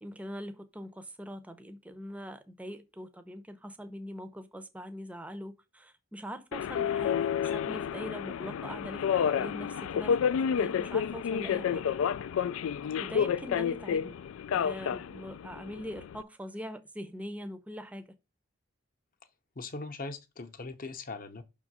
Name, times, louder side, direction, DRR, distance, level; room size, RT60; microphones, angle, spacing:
voice 1, 0.0-11.8 13.0-14.2 14.5-18.1, equal, 5° right, 0.6 m, -42 dB
Subway metro underground, 6.5-16.2, left 7 dB, 80° left, 0.3 m, -30 dB
voice 2, 19.6-21.4, left 3 dB, 40° left, 0.8 m, -40 dB
5.9 x 3.7 x 6.1 m
head